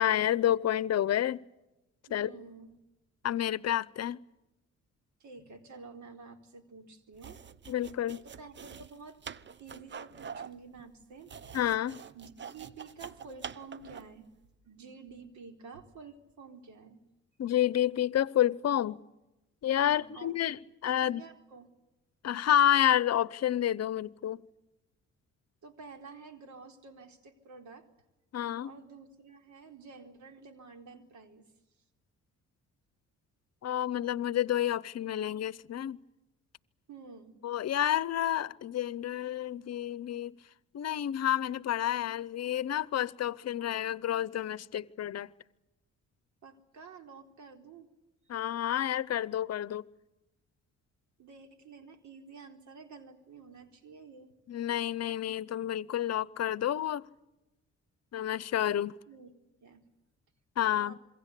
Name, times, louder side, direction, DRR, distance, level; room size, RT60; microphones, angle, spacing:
voice 1, 0.0-1.4 2.1-2.3 3.2-4.2 7.7-8.2 11.5-12.0 17.4-19.0 19.6-21.2 22.2-24.4 28.3-28.7 33.6-36.0 37.4-40.4 40.7-45.3 48.3-49.8 54.5-57.0 58.1-58.9 60.6-61.0, left 11 dB, 55° left, 0.9 m, -29 dB
voice 2, 2.1-2.7 5.2-7.4 8.2-9.2 9.6-11.6 12.1-14.3 14.6-17.0 19.8-20.3 21.0-21.7 25.6-27.9 28.6-31.5 36.9-37.4 46.4-47.9 51.2-54.3 59.1-59.3 59.6-59.9 60.7-61.0, right 4 dB, 70° right, 4.1 m, -50 dB
sound 1, 7.1-14.2, right 6 dB, 40° right, 0.9 m, -46 dB
27.0 x 23.0 x 8.4 m
cardioid pair, 90°, 30 cm